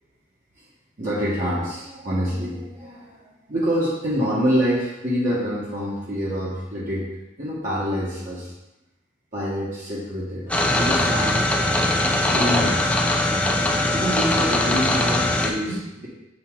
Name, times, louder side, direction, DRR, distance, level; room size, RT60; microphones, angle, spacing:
voice 1, 1.0-7.1 7.4-8.5 9.3-11.5 12.3-16.1, equal, 45° right, -8 dB, 1.6 m, -26 dB
sound 1, 10.5-15.5, left 1 dB, 5° left, 0.6 m, -21 dB
7.4 x 5.7 x 3.8 m, 0.97 s
head